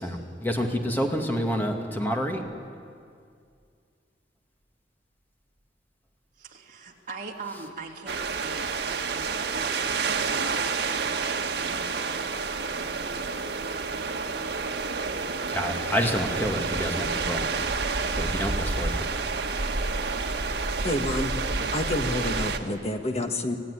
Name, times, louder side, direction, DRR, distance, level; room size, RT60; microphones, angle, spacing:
voice 1, 0.0-2.4 15.5-17.5 18.2-19.1, equal, 10° left, 2 dB, 2.2 m, -28 dB
voice 2, 6.4-15.5, right 3 dB, 45° right, -1 dB, 3.0 m, -43 dB
sound 1, 8.1-22.6, right 4 dB, 75° right, 1.5 m, -29 dB
voice 3, 20.8-21.3 21.7-23.6, left 1 dB, 35° left, 5 dB, 1.6 m, -28 dB
26.5 x 16.5 x 9.9 m, 2.3 s
head